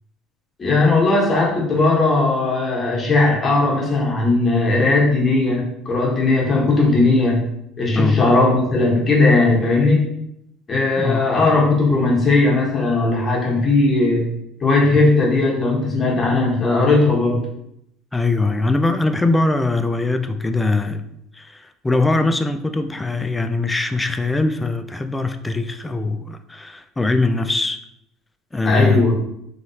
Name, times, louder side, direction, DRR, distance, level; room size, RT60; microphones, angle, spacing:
voice 1, 0.6-7.4 7.8-10.1 10.7-14.3 14.6-17.4 28.6-29.1, left 3 dB, 30° left, -3 dB, 1.2 m, -17 dB
voice 2, 7.9-8.3 11.0-11.3 18.1-21.1 21.3-27.8 28.5-29.1, left 3 dB, 15° left, 9 dB, 0.3 m, -21 dB
3.0 x 2.8 x 2.8 m, 0.77 s
supercardioid pair, 85°, 0 cm